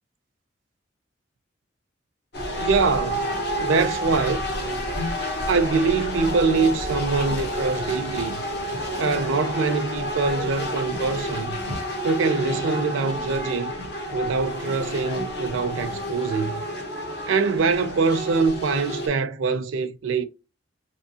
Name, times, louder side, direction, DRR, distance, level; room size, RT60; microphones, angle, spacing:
sound 1, 2.3-19.1, equal, 55° left, 0.9 m, -30 dB
voice 1, 2.6-3.2 3.6-4.4 5.5-8.4 9.0-11.6 12.0-13.7 14.1-16.6 17.3-20.2, right 4 dB, 90° right, 0.5 m, -24 dB
3.4 x 3.0 x 2.7 m
head